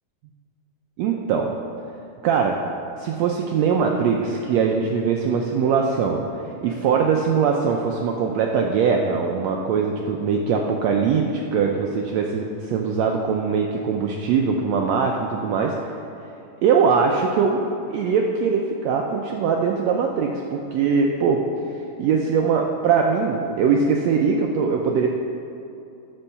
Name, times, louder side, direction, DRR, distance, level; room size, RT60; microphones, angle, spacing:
voice 1, 1.0-1.5 2.2-2.6 3.0-6.2 6.6-15.7 16.6-17.6 17.9-21.4 22.0-25.1, right 6 dB, 90° right, 1 dB, 1.5 m, -21 dB
10.0 x 6.2 x 6.6 m, 2.8 s
omnidirectional pair, 3.8 m